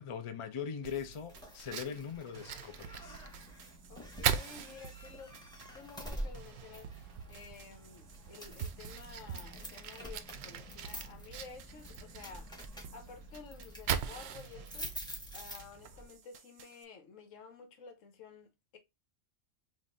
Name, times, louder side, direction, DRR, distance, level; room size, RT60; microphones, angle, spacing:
voice 1, 0.0-3.3, left 7 dB, 50° left, 0.3 m, -41 dB
sound 1, 0.8-16.8, right 8 dB, 90° right, 1.0 m, -56 dB
sound 2, 1.1-16.1, equal, 5° left, 1.0 m, -48 dB
Fire, 1.6-16.2, right 8 dB, 65° right, 0.7 m, -41 dB
voice 2, 1.9-2.2 3.9-5.3 5.7-12.5 12.9-14.9 15.3-18.8, left 5 dB, 80° left, 1.3 m, -52 dB
5.2 x 2.6 x 2.5 m
omnidirectional pair, 1.3 m